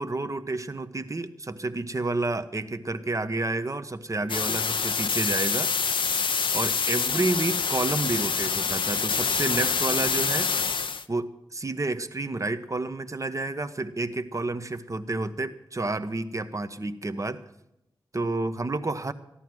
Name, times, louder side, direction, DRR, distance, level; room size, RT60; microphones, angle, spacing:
voice 1, 0.0-5.7 6.5-10.5 11.1-17.4 18.1-19.1, right 2 dB, 35° right, 10 dB, 1.1 m, -30 dB
sound 1, 4.3-11.0, left 5 dB, 65° left, 0.7 m, -26 dB
14.0 x 11.5 x 6.1 m, 0.84 s
cardioid pair, 40°, 9 cm